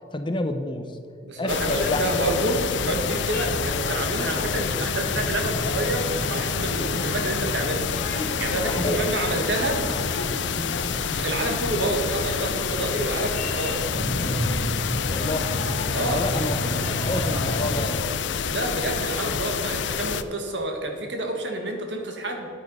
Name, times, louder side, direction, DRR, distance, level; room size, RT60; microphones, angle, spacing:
voice 1, 0.1-0.9 1.4-2.0 6.9-7.1 8.6-9.1 10.5-10.8 15.1-15.5 15.9-16.6 16.9-18.0, left 1 dB, 25° left, 7 dB, 0.6 m, -29 dB
voice 2, 1.2-9.8 11.1-13.9 15.9-16.2 18.5-22.5, right 1 dB, 60° right, 3 dB, 1.8 m, -28 dB
sound 1, 1.5-20.2, left 7 dB, 65° left, 0.5 m, -28 dB
sound 2, 1.8-17.9, left 1 dB, 50° left, 1.6 m, -31 dB
10.0 x 9.0 x 5.5 m, 2.5 s
head